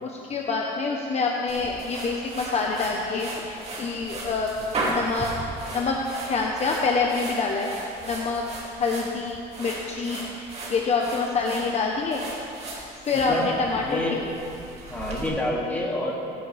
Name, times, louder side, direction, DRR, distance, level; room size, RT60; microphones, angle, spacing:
voice 1, 0.0-4.5 4.8-5.3 5.7-6.0 6.3-8.4 8.8-12.3 13.0-14.0 15.7-15.8, left 4 dB, 40° left, 0 dB, 1.1 m, -26 dB
sound 1, 1.5-15.3, right 2 dB, 40° right, 2.8 m, -36 dB
voice 2, 13.1-14.2 14.9-16.3, left 1 dB, 10° left, -4 dB, 2.7 m, -28 dB
18.0 x 10.0 x 3.5 m, 2.6 s
cardioid pair, 110°, 17 cm